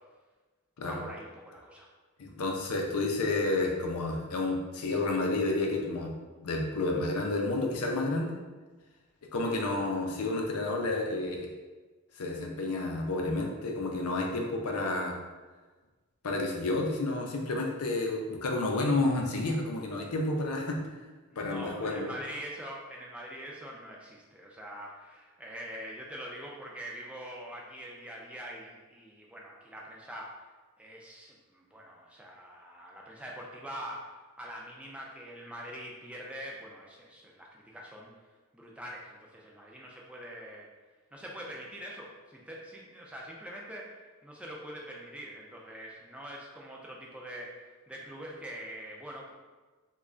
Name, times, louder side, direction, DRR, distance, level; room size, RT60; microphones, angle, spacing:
voice 1, 0.8-1.9 21.3-30.4 30.8-34.1 34.4-38.1 38.5-40.7 41.1-49.3, equal, 5° right, -3 dB, 0.4 m, -44 dB
voice 2, 2.2-6.1 6.4-8.3 9.3-11.5 12.2-15.2 16.2-20.8 21.4-22.1, left 2 dB, 80° left, 1 dB, 0.5 m, -30 dB
3.1 x 2.3 x 3.7 m, 1.3 s
head